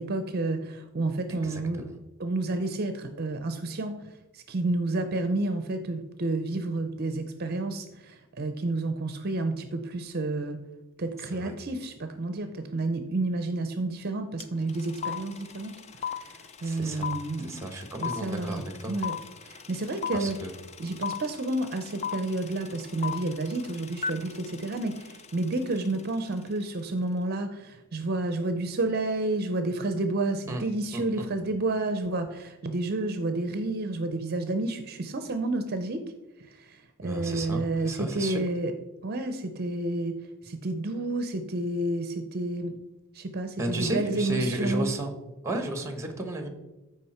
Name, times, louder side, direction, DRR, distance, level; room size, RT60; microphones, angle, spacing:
voice 1, 0.0-1.9 2.2-4.0 4.3-10.6 11.0-17.6 18.0-19.1 19.4-20.4 20.8-36.0 36.5-38.7 39.0-40.2 40.4-42.7 43.1-44.9, right 2 dB, 45° right, 7 dB, 0.6 m, -30 dB
voice 2, 1.3-2.0 11.2-11.5 16.6-17.1 17.4-18.9 20.1-20.5 30.5-30.6 30.9-31.3 37.0-38.4 43.6-45.1 45.4-46.5, right 1 dB, 15° right, 6 dB, 1.2 m, -33 dB
sound 1, 14.4-14.5 14.7-25.9, left 7 dB, 30° left, 0.4 m, -35 dB
13.5 x 5.0 x 4.3 m, 1.1 s
head